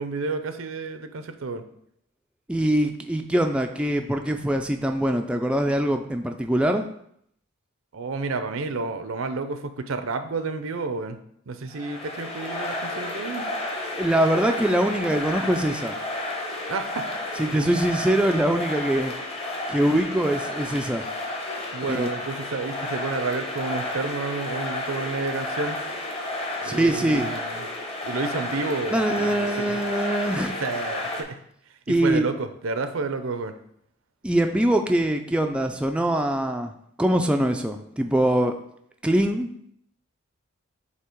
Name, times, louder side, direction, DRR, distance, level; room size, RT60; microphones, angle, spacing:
voice 1, 0.0-1.6 7.9-11.2 11.5-13.4 16.7-17.1 21.7-25.8 26.6-27.6 28.0-29.8 30.6-31.4 31.9-33.5, right 3 dB, 75° right, 9 dB, 0.6 m, -30 dB
voice 2, 2.5-6.8 14.0-15.9 17.4-19.1 19.7-21.0 21.9-22.1 26.6-27.3 28.9-30.5 31.9-32.3 34.2-36.7 37.0-38.5 39.0-39.5, right 1 dB, 5° right, 4 dB, 0.3 m, -23 dB
sound 1, 11.7-31.2, left 1 dB, 30° left, 0.9 m, -32 dB
8.1 x 2.8 x 4.5 m, 0.71 s
head